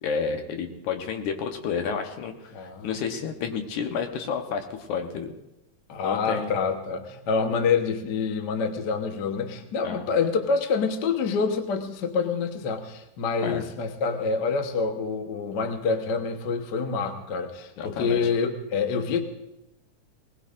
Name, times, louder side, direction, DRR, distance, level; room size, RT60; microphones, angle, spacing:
voice 1, 0.0-5.3 6.0-6.5 9.8-10.0 13.4-13.6 17.8-18.2, left 6 dB, 75° left, 5 dB, 2.5 m, -30 dB
voice 2, 2.5-2.9 5.9-19.2, left 5 dB, 60° left, 5 dB, 1.1 m, -27 dB
20.0 x 20.0 x 2.5 m, 0.92 s
omnidirectional pair, 3.5 m